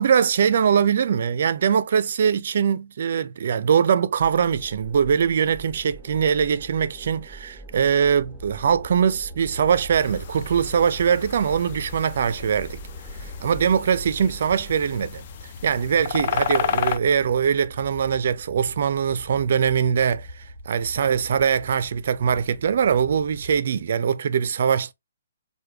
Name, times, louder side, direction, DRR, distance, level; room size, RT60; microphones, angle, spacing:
voice 1, 0.0-12.8 13.2-24.9, right 7 dB, 55° right, 0.4 m, -22 dB
sound 1, 4.2-15.0, right 2 dB, ahead, 0.6 m, -44 dB
sound 2, 8.0-23.6, equal, 75° left, 1.2 m, -43 dB
sound 3, 10.0-17.0, left 8 dB, 40° left, 0.3 m, -32 dB
3.1 x 2.2 x 3.3 m
hypercardioid pair, 160°, 0 cm